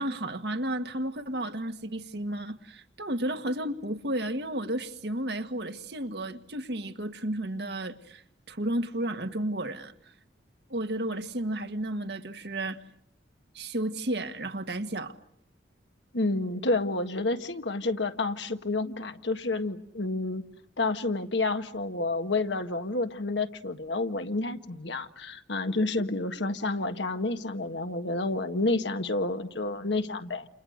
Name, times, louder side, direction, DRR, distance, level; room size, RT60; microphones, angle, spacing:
voice 1, 0.0-10.1 10.7-12.8 13.5-15.2, right 1 dB, 65° right, 1.6 m, -32 dB
voice 2, 16.1-20.4 20.8-30.5, left 2 dB, 80° left, 1.6 m, -29 dB
29.5 x 29.0 x 6.6 m
head